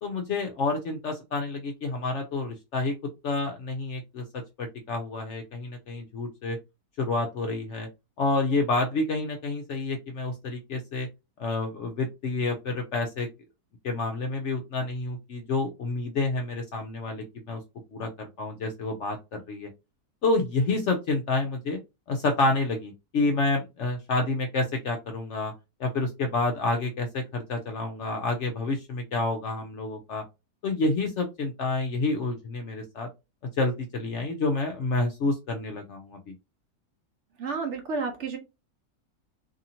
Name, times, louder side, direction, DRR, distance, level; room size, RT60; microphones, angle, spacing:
voice 1, 0.0-2.9 3.2-4.2 4.6-6.6 7.0-7.9 8.2-11.1 11.4-13.3 13.8-17.6 17.9-19.7 20.2-21.8 22.1-25.5 25.8-30.2 30.6-33.1 33.6-36.3, left 3 dB, 70° left, 4 dB, 0.7 m, -29 dB
voice 2, 37.4-38.4, right 4 dB, 55° right, 3 dB, 0.9 m, -31 dB
2.8 x 2.7 x 2.7 m, 0.25 s
omnidirectional pair, 1.6 m